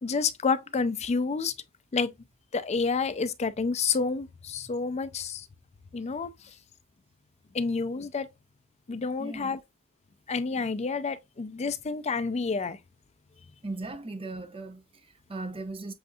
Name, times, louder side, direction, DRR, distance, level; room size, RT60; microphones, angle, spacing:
voice 1, 0.0-1.5 1.9-2.1 2.5-5.5 5.9-6.3 7.5-8.3 8.9-9.6 10.3-12.8, left 4 dB, 30° left, 0.4 m, -29 dB
voice 2, 9.2-9.6 13.6-15.9, right 2 dB, 25° right, 0.8 m, -38 dB
7.7 x 2.7 x 2.4 m
head